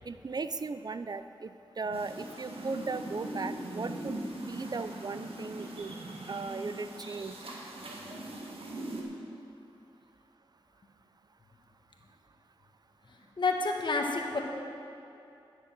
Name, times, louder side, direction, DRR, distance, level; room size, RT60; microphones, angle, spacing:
voice 1, 0.1-1.5 1.8-4.2 4.5-5.9 6.3-7.4, right 4 dB, 45° right, 11 dB, 0.4 m, -37 dB
sound 1, 1.9-9.0, right 1 dB, 80° right, 1.5 m, -41 dB
voice 2, 13.4-14.4, left 3 dB, 55° left, 2 dB, 1.3 m, -29 dB
10.5 x 6.7 x 7.6 m, 2.7 s
cardioid pair, 65°, 10 cm